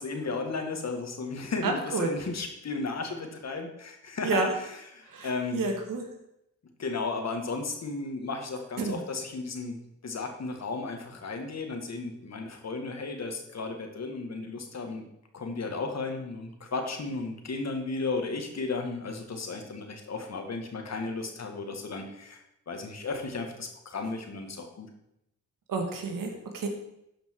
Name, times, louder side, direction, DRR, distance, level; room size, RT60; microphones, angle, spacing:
voice 1, 0.0-5.6 6.8-9.8 10.0-15.1 15.3-22.4 22.7-24.9, left 3 dB, 55° left, 4 dB, 1.9 m, -34 dB
voice 2, 1.6-2.1 4.2-4.5 5.1-6.1 8.8-9.0 25.7-26.7, right 3 dB, 85° right, 3 dB, 1.9 m, -30 dB
12.0 x 5.3 x 4.7 m, 0.81 s
cardioid pair, 70°, 32 cm